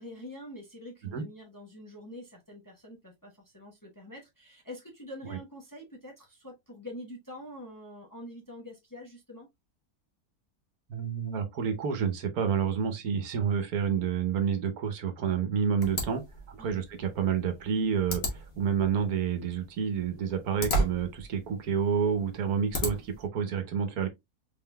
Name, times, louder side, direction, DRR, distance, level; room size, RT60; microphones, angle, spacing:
voice 1, 0.0-9.5 16.6-16.8, left 1 dB, 15° left, 0.9 m, -45 dB
voice 2, 10.9-24.1, right 7 dB, 75° right, 1.3 m, -29 dB
sound 1, 15.8-23.3, equal, 45° left, 1.4 m, -35 dB
4.1 x 3.7 x 2.2 m
omnidirectional pair, 1.6 m